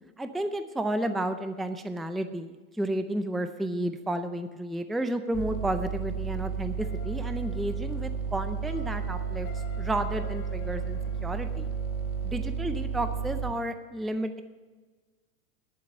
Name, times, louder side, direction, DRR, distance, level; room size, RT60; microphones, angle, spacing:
voice 1, 0.2-9.5 9.8-11.7 12.2-14.4, right 1 dB, ahead, 9 dB, 0.4 m, -32 dB
sound 1, 5.3-13.5, right 6 dB, 30° right, 1.5 m, -32 dB
sound 2, 6.8-12.4, left 6 dB, 75° left, 2.0 m, -48 dB
11.0 x 9.4 x 6.8 m, 1.4 s
hypercardioid pair, 110°, 43 cm